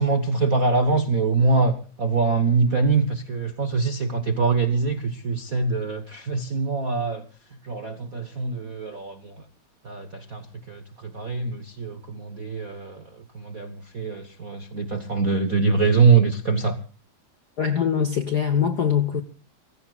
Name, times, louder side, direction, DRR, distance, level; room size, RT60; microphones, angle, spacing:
voice 1, 0.0-7.2 7.6-9.3 9.8-10.4 10.7-10.8 11.1-13.0 13.3-16.8, right 4 dB, 55° right, 0.9 m, -23 dB
voice 2, 17.6-19.2, left 7 dB, 60° left, 1.0 m, -22 dB
29.0 x 15.5 x 2.4 m
omnidirectional pair, 3.3 m